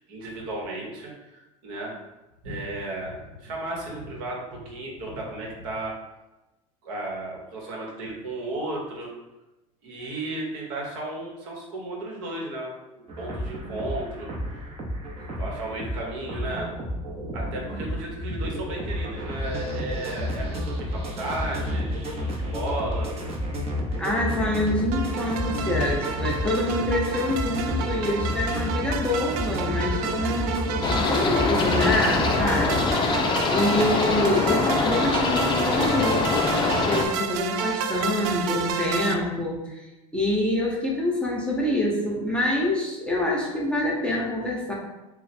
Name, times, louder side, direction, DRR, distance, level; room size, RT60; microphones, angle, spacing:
voice 1, 0.1-1.9 2.4-5.9 6.8-9.1 9.8-14.7 15.4-16.7 17.3-23.1, right 2 dB, 70° right, -2 dB, 1.1 m, -34 dB
sound 1, 13.1-32.9, equal, 35° right, 0.8 m, -31 dB
voice 2, 24.0-32.8 33.5-39.9 40.1-44.7, left 1 dB, 5° left, -3 dB, 0.8 m, -26 dB
sound 2, 24.9-39.1, right 7 dB, 55° right, 0.4 m, -31 dB
sound 3, 30.8-37.1, left 4 dB, 25° left, 0.4 m, -24 dB
3.0 x 2.2 x 4.2 m, 1.0 s
hypercardioid pair, 95°, 18 cm